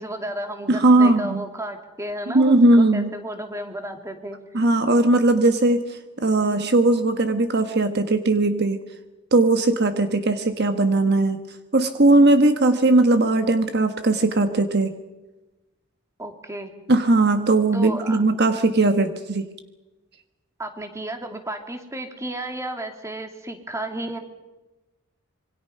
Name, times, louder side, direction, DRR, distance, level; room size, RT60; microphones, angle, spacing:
voice 1, 0.0-4.6 16.2-16.7 17.7-18.2 20.6-24.2, right 1 dB, 15° right, 5 dB, 2.5 m, -33 dB
voice 2, 0.7-1.4 2.3-3.1 4.5-8.8 9.3-11.4 11.7-14.9 16.9-19.5, right 2 dB, 55° right, 8 dB, 1.3 m, -19 dB
26.5 x 24.0 x 5.7 m, 1.1 s
head